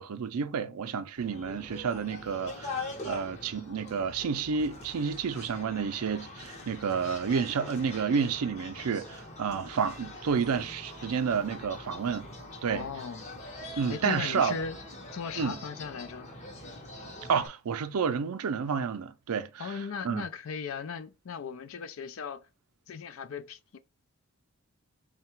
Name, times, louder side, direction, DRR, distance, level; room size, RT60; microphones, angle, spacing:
voice 1, 0.0-12.3 12.6-12.9 13.8-14.6 15.4-15.6 17.3-19.8 20.0-20.2, right 6 dB, 85° right, 0.4 m, -30 dB
sound 1, 1.2-17.5, left 2 dB, 30° left, 0.7 m, -43 dB
voice 2, 12.7-13.2 13.9-14.8 15.1-16.3 19.6-22.4 22.9-23.8, left 6 dB, 65° left, 0.4 m, -37 dB
3.7 x 2.2 x 4.4 m
head